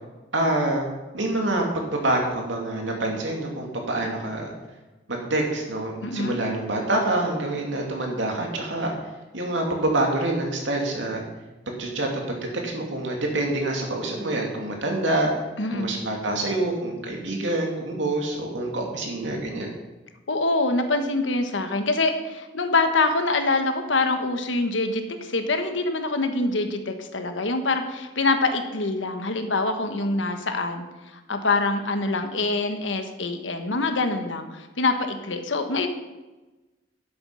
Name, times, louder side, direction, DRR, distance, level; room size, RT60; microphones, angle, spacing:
voice 1, 0.3-0.9 1.1-4.5 5.1-8.9 9.3-11.2 11.7-12.4 12.6-15.3 15.7-19.7, right 2 dB, 80° right, 1 dB, 2.6 m, -26 dB
voice 2, 6.0-6.4 15.6-16.0 20.3-35.9, left 3 dB, 90° left, 7 dB, 1.3 m, -25 dB
11.0 x 8.0 x 5.7 m, 1.1 s
head